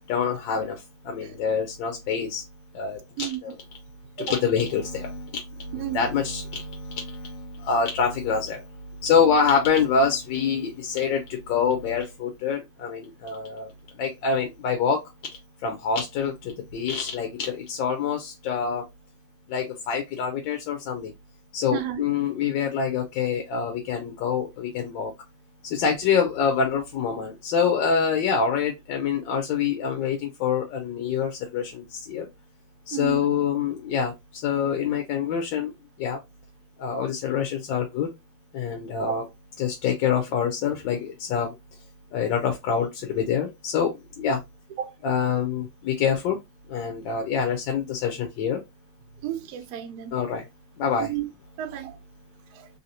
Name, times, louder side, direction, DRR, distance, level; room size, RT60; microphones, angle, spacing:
voice 1, 0.1-2.4 2.7-3.5 4.2-13.7 14.0-15.0 15.6-18.8 19.5-21.1 21.5-25.1 25.6-32.3 32.9-35.7 36.0-36.2 36.8-38.1 38.5-39.2 39.6-41.5 42.1-44.4 45.0-46.4 46.7-48.6 50.1-50.4 50.8-51.1, left 6 dB, 70° left, 1.2 m, -26 dB
voice 2, 21.7-22.0 32.9-33.3 39.1-39.2 44.8-45.0 49.2-50.1 51.0-51.3 51.6-51.9 52.5-52.7, right 11 dB, 70° right, 0.9 m, -32 dB
3.3 x 2.7 x 2.7 m
omnidirectional pair, 2.4 m